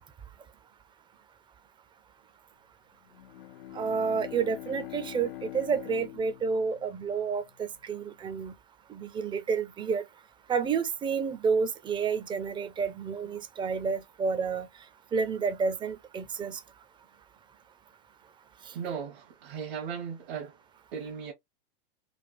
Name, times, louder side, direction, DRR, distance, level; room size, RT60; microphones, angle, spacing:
Bowed string instrument, 3.1-7.7, left 15 dB, 90° left, 0.5 m, -44 dB
voice 1, 3.7-8.5 8.9-10.0 10.5-14.7 15.1-16.6, right 5 dB, 15° right, 0.4 m, -30 dB
voice 2, 18.7-20.6 20.9-21.3, right 7 dB, 65° right, 1.2 m, -37 dB
3.4 x 2.4 x 2.5 m
hypercardioid pair, 120°, 29 cm